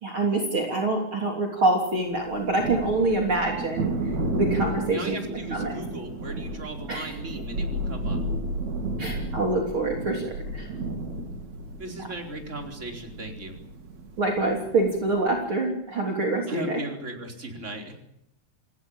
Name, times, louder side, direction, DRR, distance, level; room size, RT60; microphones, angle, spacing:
voice 1, 0.0-5.7 6.9-7.1 9.0-10.7 14.2-16.8, right 2 dB, 40° right, 1 dB, 4.0 m, -26 dB
Thunder, 2.1-15.3, right 2 dB, 65° right, 4.1 m, -32 dB
voice 2, 4.9-8.2 11.8-13.6 16.5-17.9, right 2 dB, 20° right, 3 dB, 4.7 m, -37 dB
28.0 x 17.5 x 8.9 m, 0.78 s
omnidirectional pair, 3.5 m